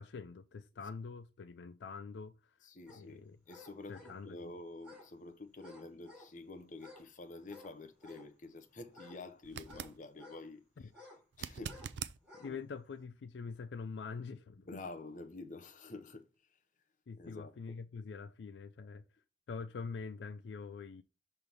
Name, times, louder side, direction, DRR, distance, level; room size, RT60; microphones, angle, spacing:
voice 1, 0.0-2.6 2.9-3.4 3.9-4.6 10.8-10.9 12.4-14.8 17.1-19.1 19.5-21.0, left 5 dB, 85° left, 0.4 m, -45 dB
voice 2, 2.6-10.9 11.4-11.9 12.3-12.6 14.7-16.3 17.2-17.8, left 2 dB, 45° left, 0.9 m, -49 dB
sound 1, 2.9-3.0 3.5-4.2 4.8-5.1 5.6-6.3 6.7-7.1 7.4-8.3 8.9-10.5 10.9-11.2 11.6-11.9 12.2-12.6 13.0-13.1, left 2 dB, 5° right, 3.8 m, -55 dB
sound 2, 9.4-10.0 11.3-12.2 15.2-15.3, right 8 dB, 80° right, 0.4 m, -43 dB
6.0 x 3.4 x 5.3 m
head